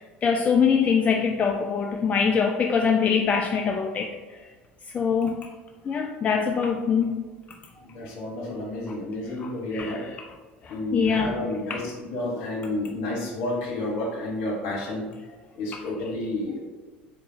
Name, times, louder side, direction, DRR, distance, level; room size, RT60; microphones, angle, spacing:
voice 1, 0.0-4.2 4.9-5.5 5.9-7.2 9.4-10.1 10.6-11.3 11.7-11.8, left 6 dB, 25° left, 3 dB, 0.3 m, -24 dB
voice 2, 7.8-10.0 10.7-15.1 15.5-16.6, left 1 dB, 55° left, -2 dB, 1.3 m, -30 dB
3.8 x 3.6 x 2.7 m, 1.3 s
figure-of-eight pair, 70°, 6 cm